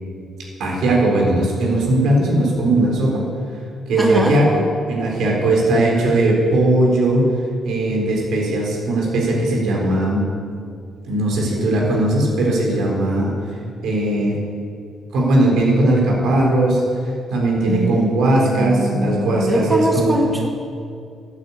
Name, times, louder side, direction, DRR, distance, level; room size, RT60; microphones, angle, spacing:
voice 1, 0.6-3.2 3.9-4.6 4.9-7.3 7.6-10.3 11.1-13.3 13.8-14.4 15.1-16.8 17.3-20.2, right 1 dB, 80° right, -2 dB, 3.9 m, -18 dB
voice 2, 4.0-4.4 17.7-20.5, right 1 dB, 15° right, -1 dB, 2.3 m, -22 dB
11.5 x 9.2 x 8.5 m, 2.3 s
cardioid pair, 90°, 0 cm